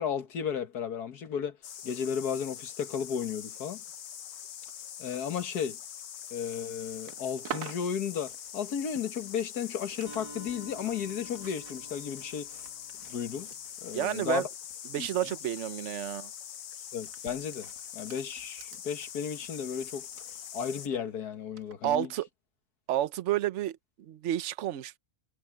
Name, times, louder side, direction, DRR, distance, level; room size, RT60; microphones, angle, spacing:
voice 1, 0.0-1.6 1.8-3.8 5.0-5.8 6.3-12.5 13.1-13.5 13.8-14.4 15.0-15.1 16.9-20.1 20.5-22.1, left 7 dB, 85° left, 1.9 m, -34 dB
sound 1, 1.6-20.9, left 9 dB, 60° left, 1.1 m, -44 dB
sound 2, 6.9-10.2 10.5-15.4 15.7-16.0 16.8-21.0 21.6-21.7, right 8 dB, 85° right, 1.6 m, -48 dB
Acoustic guitar, 10.1-13.9, right 2 dB, 20° right, 3.1 m, -50 dB
voice 2, 13.9-14.5 14.9-16.3 21.8-22.3 22.9-25.0, right 12 dB, 55° right, 1.0 m, -30 dB
omnidirectional pair, 1.6 m